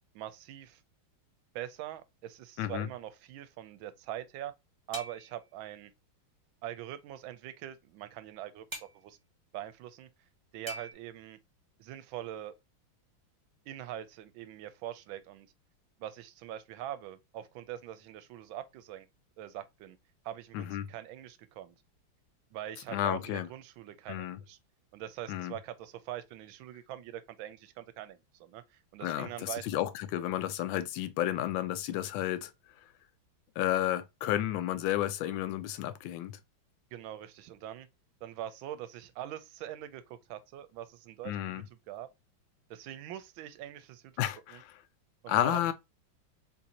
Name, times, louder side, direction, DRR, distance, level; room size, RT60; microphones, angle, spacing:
voice 1, 0.1-0.8 1.5-4.5 4.9-5.9 6.6-9.2 9.5-10.1 10.5-11.4 11.8-12.5 13.7-15.5 16.0-19.1 19.4-20.0 20.2-21.7 22.5-24.6 24.9-29.8 36.9-37.9 38.2-42.1 42.7-44.2 44.5-44.6 45.2-45.7, right 12 dB, 80° right, 1.3 m, -43 dB
voice 2, 2.6-2.9 20.5-20.9 22.9-23.5 24.1-24.4 25.3-25.6 29.0-32.5 33.6-36.4 41.2-41.6 44.2-44.8 45.3-45.7, left 13 dB, 75° left, 1.2 m, -32 dB
sound 1, 4.9-5.4 8.7-9.0 10.7-10.9, right 1 dB, 15° right, 1.0 m, -41 dB
3.9 x 2.7 x 2.7 m
omnidirectional pair, 2.2 m